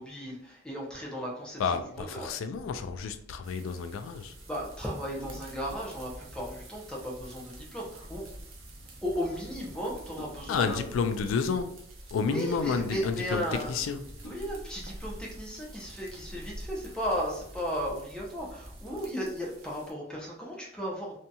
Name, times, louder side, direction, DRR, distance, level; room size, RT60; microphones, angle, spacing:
voice 1, 0.0-2.3 4.5-8.2 9.0-10.8 12.2-13.8 14.2-21.2, equal, 5° left, 0.6 m, -35 dB
voice 2, 1.6-4.4 10.5-11.8 12.1-14.2, left 5 dB, 85° left, 0.3 m, -30 dB
sound 1, 1.7-2.3 4.3-4.4 4.8-5.8 7.3-7.7 10.1-10.8 11.7-12.4 13.2-13.3 13.6-13.7 14.1-14.8 15.3-15.4, left 1 dB, 60° left, 1.0 m, -52 dB
sound 2, 2.5-19.1, equal, 25° left, 1.2 m, -49 dB
sound 3, 3.4-19.9, right 2 dB, 85° right, 0.6 m, -50 dB
2.7 x 2.6 x 2.2 m
head